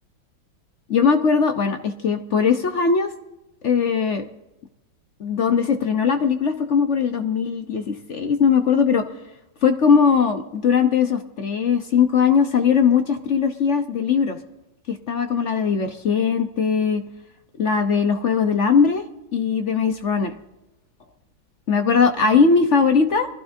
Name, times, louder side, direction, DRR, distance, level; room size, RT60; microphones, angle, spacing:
voice 1, 0.9-3.1 3.6-4.3 5.2-9.0 9.6-14.4 14.9-17.0 17.6-19.0 19.3-20.4 21.7-23.3, left 6 dB, 55° left, 7 dB, 0.8 m, -19 dB
24.0 x 15.5 x 2.7 m, 0.95 s
omnidirectional pair, 2.2 m